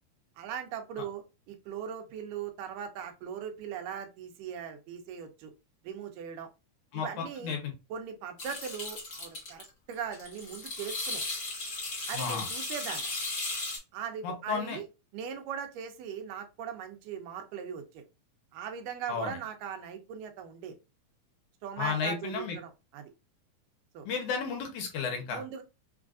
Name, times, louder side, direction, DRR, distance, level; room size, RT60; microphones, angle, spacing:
voice 1, 0.4-5.5 5.8-6.5 6.9-7.5 7.9-11.2 12.1-13.1 13.9-14.8 15.1-18.0 18.5-20.8 21.6-23.1 23.9-24.1 25.3-25.6, right 7 dB, 85° right, 6 dB, 2.3 m, -39 dB
sound 1, 8.4-9.6 9.9-13.8, left 2 dB, 55° left, 0.8 m, -36 dB
voice 2, 12.1-12.5 14.2-14.8 19.1-19.4 21.8-22.6 24.1-25.4, left 6 dB, 75° left, 3 dB, 2.2 m, -32 dB
5.3 x 2.4 x 2.4 m, 0.28 s
omnidirectional pair, 3.8 m